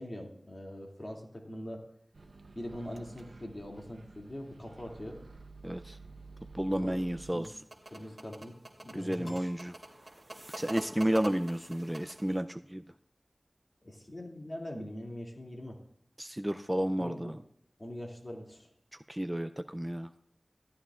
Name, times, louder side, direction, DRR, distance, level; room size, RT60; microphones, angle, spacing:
voice 1, 0.0-1.8 2.5-5.2 6.7-7.0 7.3-7.5 7.9-8.5 8.8-9.5 13.8-15.8 16.7-17.3 17.8-18.7, left 1 dB, 35° left, 0 dB, 2.5 m, -43 dB
Microwave oven, 2.1-7.3, right 3 dB, 80° right, 0.7 m, -51 dB
voice 2, 5.6-6.0 6.5-7.5 8.9-9.7 10.6-12.8 16.2-17.4 19.1-20.1, right 1 dB, 15° right, 9 dB, 0.4 m, -32 dB
sound 1, 7.2-12.4, right 1 dB, 35° right, 2.7 m, -45 dB
Piano, 9.2-10.8, left 1 dB, 70° left, 1.9 m, -54 dB
14.5 x 13.0 x 2.5 m, 0.69 s
wide cardioid pair, 45°, 0 cm